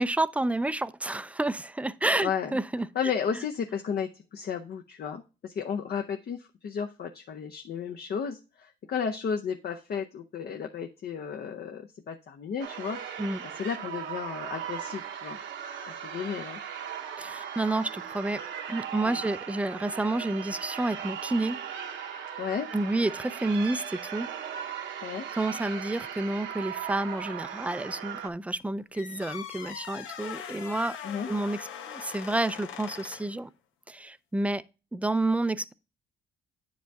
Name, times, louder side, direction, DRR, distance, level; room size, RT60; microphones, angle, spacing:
voice 1, 0.0-2.9 13.2-13.4 17.2-18.4 18.7-21.6 22.7-24.3 25.3-31.0 31.3-33.5 33.9-34.6 34.9-35.7, right 2 dB, 5° right, 0.4 m, -29 dB
voice 2, 2.2-2.5 2.9-13.0 13.5-15.4 16.0-16.6 19.0-19.2 22.4-22.7 25.0-25.3 31.0-31.3, left 7 dB, 50° left, 0.7 m, -33 dB
sound 1, 12.6-28.3, right 8 dB, 70° right, 1.0 m, -38 dB
sound 2, 28.9-33.4, left 8 dB, 85° left, 0.9 m, -41 dB
9.0 x 5.1 x 3.4 m
cardioid pair, 90°, 20 cm